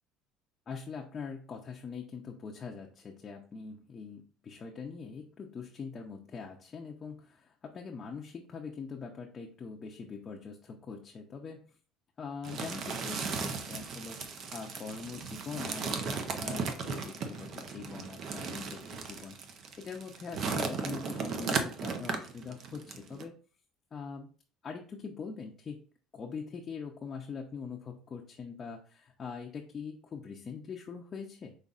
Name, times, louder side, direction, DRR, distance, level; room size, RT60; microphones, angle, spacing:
voice 1, 0.7-11.6 12.2-19.4 19.8-23.3 23.9-24.3 24.6-25.8 26.1-31.5, left 5 dB, 30° left, 0 dB, 0.6 m, -43 dB
sound 1, 12.4-23.2, right 5 dB, 50° right, 0.7 m, -36 dB
5.3 x 4.0 x 2.5 m, 0.41 s
cardioid pair, 125°, 0 cm